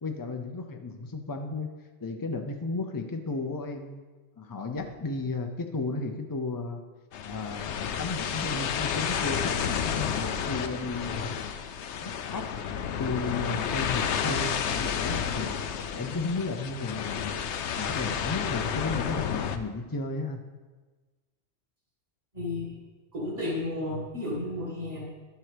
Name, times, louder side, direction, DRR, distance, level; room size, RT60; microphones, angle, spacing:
voice 1, 0.0-4.0 4.4-6.8 7.2-11.4 12.0-15.6 15.9-17.4 17.7-20.4, left 3 dB, 35° left, 4 dB, 0.3 m, -34 dB
sound 1, 7.1-19.6, left 7 dB, 90° left, 0.9 m, -31 dB
voice 2, 22.3-22.8 23.1-25.1, left 2 dB, 35° right, -7 dB, 1.9 m, -32 dB
11.5 x 7.4 x 3.3 m, 1.3 s
omnidirectional pair, 1.1 m